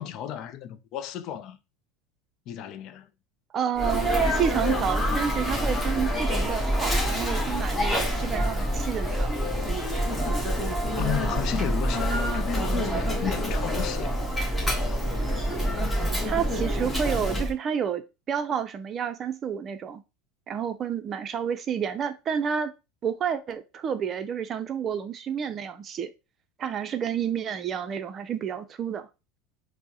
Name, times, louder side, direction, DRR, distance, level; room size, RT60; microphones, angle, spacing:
voice 1, 0.0-1.6 2.5-3.1 11.0-14.1, left 10 dB, 55° left, 0.4 m, -34 dB
voice 2, 3.5-9.3 16.2-18.0 18.3-20.0 20.5-22.7 23.0-26.1 26.6-29.1, right 8 dB, 35° right, 0.5 m, -30 dB
Sneeze, 3.8-17.5, equal, 5° left, 1.2 m, -26 dB
4.4 x 2.1 x 2.8 m
supercardioid pair, 105°, 0 cm